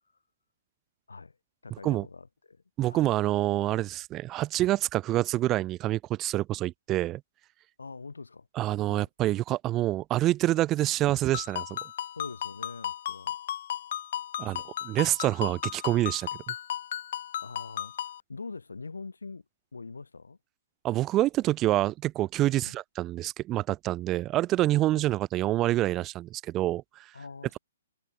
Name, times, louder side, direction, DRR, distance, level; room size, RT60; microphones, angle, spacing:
voice 1, 1.6-2.6 2.9-3.1 7.8-8.5 8.9-9.1 12.2-13.4 14.4-14.7 17.4-19.4 19.7-20.4 22.6-22.8 24.9-25.1 27.1-27.6, left 4 dB, 75° left, 7.7 m, -43 dB
voice 2, 2.8-7.2 8.6-11.8 14.4-16.5 20.8-27.1, right 15 dB, 25° right, 2.0 m, -27 dB
Ringtone, 11.3-18.2, left 11 dB, 50° left, 6.5 m, -35 dB
figure-of-eight pair, 125°, 0 cm